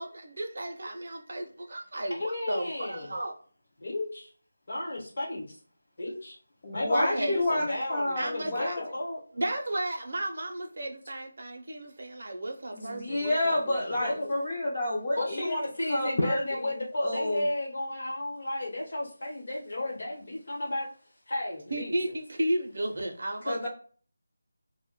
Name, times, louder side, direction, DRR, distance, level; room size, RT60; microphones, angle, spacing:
voice 1, 0.0-3.3 6.9-7.7 8.2-8.8 9.3-14.0 21.7-23.7, right 1 dB, 45° right, 0.5 m, -34 dB
voice 2, 2.1-3.1 3.8-4.3 4.7-5.6 6.0-6.3 6.7-9.2 14.0-14.3 15.2-20.9 21.3-21.9, left 1 dB, 50° left, 1.0 m, -33 dB
voice 3, 6.6-8.9 12.7-15.6 15.9-17.5 23.5-23.7, left 1 dB, 30° left, 0.4 m, -30 dB
2.1 x 2.1 x 3.6 m
figure-of-eight pair, 175°, 0 cm